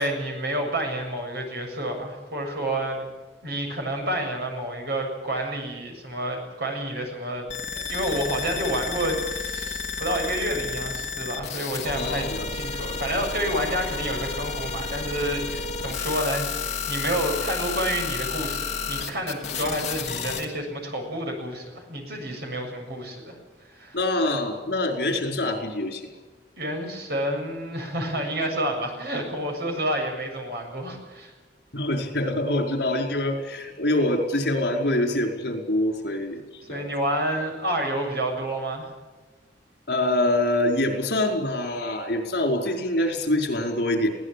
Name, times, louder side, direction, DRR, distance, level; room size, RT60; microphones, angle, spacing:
voice 1, 0.0-3.1 3.4-7.5 7.7-23.4 23.7-24.0 26.6-31.3 36.7-38.9, right 1 dB, 65° right, 3 dB, 7.4 m, -29 dB
sound 1, 7.5-20.4, left 5 dB, 40° left, 3.1 m, -31 dB
voice 2, 12.0-12.5 23.9-26.0 31.7-36.9 39.9-44.1, left 1 dB, 65° left, 3 dB, 5.0 m, -25 dB
22.5 x 17.5 x 8.6 m, 1.2 s
head